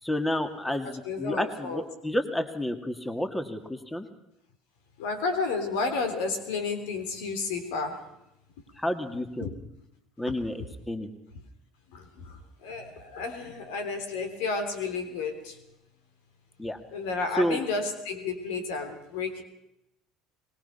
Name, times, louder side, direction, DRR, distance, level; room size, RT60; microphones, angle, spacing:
voice 1, 0.0-4.1 8.7-9.5 10.2-11.1 16.6-16.8 17.3-17.6, left 1 dB, 10° left, 7 dB, 2.5 m, -30 dB
voice 2, 1.0-1.8 5.0-8.0 9.4-9.5 11.9-12.0 12.6-15.5 16.9-19.4, left 4 dB, 75° left, 7 dB, 3.4 m, -31 dB
24.0 x 21.0 x 5.8 m, 0.85 s
hypercardioid pair, 70°, 0 cm